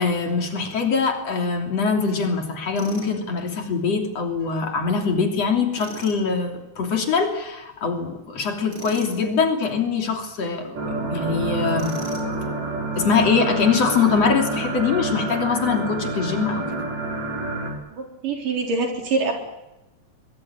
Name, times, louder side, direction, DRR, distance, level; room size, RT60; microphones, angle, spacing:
voice 1, 0.0-10.8 11.1-12.0 13.0-16.7, left 5 dB, 50° left, 3 dB, 4.1 m, -23 dB
Tools, 2.8-3.1 5.7-6.2 8.7-9.2 11.8-12.4, right 2 dB, 30° right, 5.2 m, -39 dB
sound 1, 10.8-17.7, right 2 dB, 55° right, 6.8 m, -28 dB
voice 2, 17.9-19.3, right 3 dB, 85° right, 3 dB, 5.7 m, -25 dB
24.0 x 21.5 x 8.9 m, 0.96 s
omnidirectional pair, 3.6 m